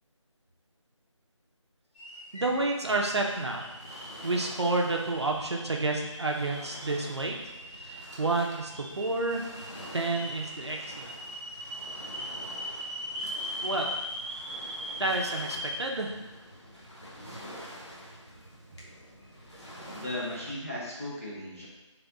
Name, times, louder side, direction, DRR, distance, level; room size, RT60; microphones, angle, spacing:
sound 1, 2.0-15.8, equal, 85° left, 1.2 m, -40 dB
voice 1, 2.3-3.6 4.2-7.3 7.8-9.4 9.9-11.1 13.6-13.9 15.0-16.2, right 2 dB, 55° right, 1 dB, 0.5 m, -30 dB
Waves surf, 3.2-20.5, equal, 60° left, 1.0 m, -47 dB
voice 2, 19.9-21.7, left 1 dB, 30° left, -7 dB, 0.5 m, -36 dB
3.4 x 2.3 x 3.9 m, 1.1 s
figure-of-eight pair, 175°, 16 cm